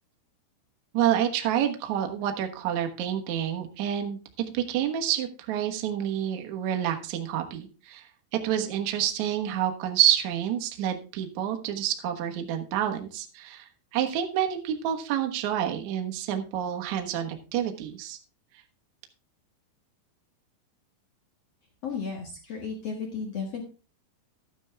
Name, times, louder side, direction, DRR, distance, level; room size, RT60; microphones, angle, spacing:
voice 1, 0.9-8.1 8.3-18.2, right 10 dB, 90° right, 4 dB, 1.6 m, -28 dB
voice 2, 21.8-23.6, left 5 dB, 80° left, 2 dB, 1.4 m, -34 dB
13.5 x 9.2 x 3.4 m, 0.33 s
omnidirectional pair, 5.6 m